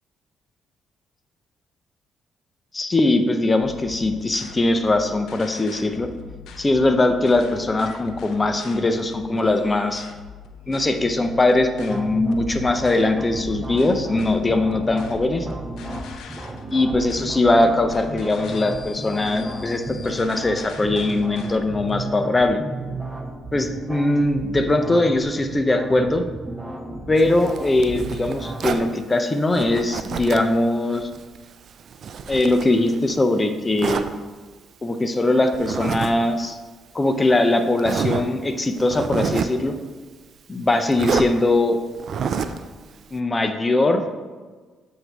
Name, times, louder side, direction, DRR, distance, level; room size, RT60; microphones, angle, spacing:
voice 1, 2.7-6.1 6.6-10.0 10.7-15.5 16.7-22.6 23.5-26.2 27.1-31.1 32.3-34.1 34.8-36.6 36.9-39.7 40.5-41.8 43.1-44.0, left 2 dB, 20° left, 7 dB, 0.5 m, -21 dB
sound 1, 3.6-22.1, left 6 dB, 80° left, 0.5 m, -42 dB
sound 2, 11.9-28.9, right 2 dB, 20° right, 0.7 m, -34 dB
Zipper (clothing), 27.2-28.9 29.5-30.6 30.9-33.2 33.8-34.1 35.5-36.1 36.4-36.5 37.2-37.3 37.8-38.3 38.8-39.6 40.9-41.3 42.0-42.6, right 6 dB, 60° right, 0.3 m, -28 dB
7.8 x 2.7 x 4.5 m, 1.4 s
cardioid pair, 90°, 0 cm